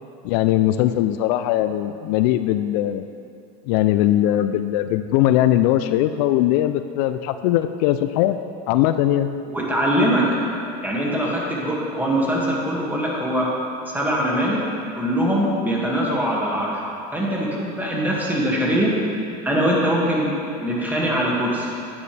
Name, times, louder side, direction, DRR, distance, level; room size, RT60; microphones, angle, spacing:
voice 1, 0.2-3.1 3.7-8.4 8.7-9.3, left 13 dB, 70° left, 10 dB, 0.4 m, -20 dB
voice 2, 9.5-10.3 10.8-13.5 13.9-14.6 15.0-16.8 17.1-18.9 19.4-20.3 20.6-21.7, equal, 10° right, -4 dB, 2.0 m, -22 dB
9.6 x 9.4 x 3.4 m, 2.6 s
supercardioid pair, 115°, 21 cm